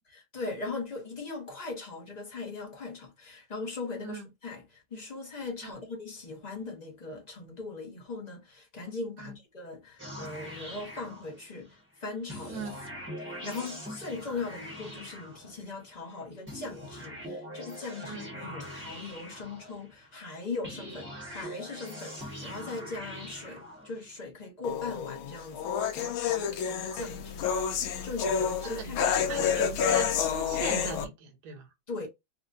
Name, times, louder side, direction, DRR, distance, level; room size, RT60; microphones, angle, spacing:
voice 1, 0.1-12.7 13.2-29.0 31.9-32.1, left 3 dB, 30° left, 0.8 m, -39 dB
sound 1, 10.0-11.7 12.3-15.9 16.5-20.1 20.6-24.1, equal, 10° right, 0.9 m, -43 dB
voice 2, 12.5-12.8 18.0-18.3 26.9-27.3 28.6-31.7, right 5 dB, 55° right, 1.5 m, -40 dB
sound 2, 24.6-31.1, left 7 dB, 85° left, 1.5 m, -29 dB
4.3 x 2.4 x 2.5 m
omnidirectional pair, 2.2 m